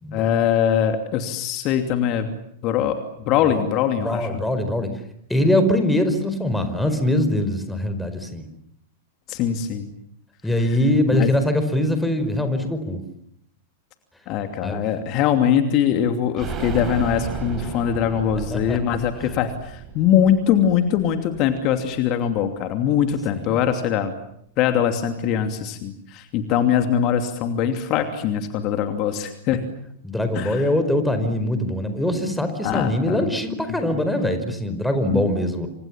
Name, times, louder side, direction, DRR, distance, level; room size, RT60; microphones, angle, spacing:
voice 1, 0.1-2.4 2.6-3.0 3.3-4.3 9.3-9.9 11.2-11.3 14.3-24.1 24.6-29.6 30.3-30.7 32.6-33.3 35.1-35.3, left 9 dB, 40° left, 7 dB, 2.8 m, -22 dB
voice 2, 4.0-4.9 5.3-8.5 10.4-13.0 14.6-14.8 18.5-18.8 19.2-19.3 23.3-23.6 30.0-35.7, left 1 dB, 5° left, 8 dB, 4.9 m, -22 dB
sound 1, 16.4-22.0 22.3-22.4 22.7-22.8, right 6 dB, 30° right, 5.2 m, -34 dB
28.5 x 26.5 x 7.5 m, 0.72 s
figure-of-eight pair, 95°, 0 cm